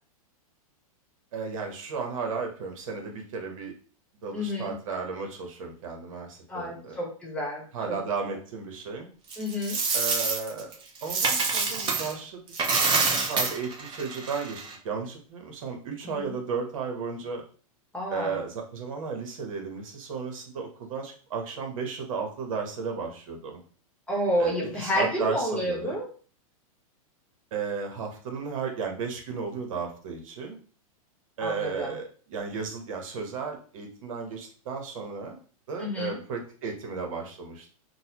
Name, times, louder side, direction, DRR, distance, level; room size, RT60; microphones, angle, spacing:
voice 1, 1.3-3.7 4.2-7.0 7.7-9.1 9.9-10.7 11.0-12.4 12.7-17.4 18.1-23.6 24.4-26.0 27.5-30.6 31.4-35.4 35.7-37.7, right 5 dB, 65° right, 2 dB, 1.0 m, -34 dB
voice 2, 4.3-4.7 6.5-8.0 9.4-9.8 16.1-16.3 17.9-18.4 24.1-26.1 31.4-31.9 35.8-36.2, equal, 5° left, -3 dB, 1.1 m, -30 dB
Coin (dropping), 9.3-12.1 12.5-14.7, right 4 dB, 25° right, 0.8 m, -27 dB
4.0 x 2.2 x 2.9 m, 0.41 s
hypercardioid pair, 130°, 18 cm